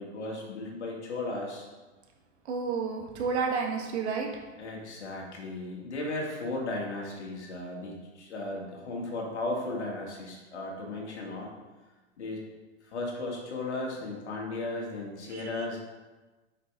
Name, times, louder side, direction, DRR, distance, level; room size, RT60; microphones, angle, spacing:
voice 1, 0.0-1.7 4.6-11.5 12.2-12.5 12.9-15.8, left 2 dB, 85° left, -1 dB, 2.3 m, -35 dB
voice 2, 2.5-4.3 15.3-15.7, right 5 dB, 80° right, 1 dB, 1.6 m, -31 dB
8.5 x 5.9 x 3.7 m, 1.2 s
hypercardioid pair, 110°, 33 cm